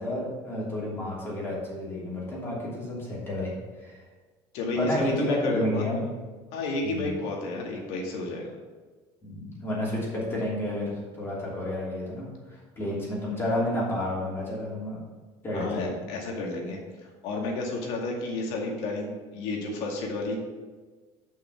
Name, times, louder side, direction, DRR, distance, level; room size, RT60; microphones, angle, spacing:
voice 1, 0.0-3.5 3.8-4.0 4.7-6.1 6.8-7.1 9.2-15.0 15.4-15.9, left 1 dB, 25° left, -5 dB, 3.0 m, -30 dB
voice 2, 4.5-5.8 6.5-8.5 15.5-16.8 17.2-20.4, left 2 dB, 75° left, 0 dB, 2.1 m, -31 dB
7.5 x 5.8 x 5.8 m, 1.4 s
cardioid pair, 155°, 10 cm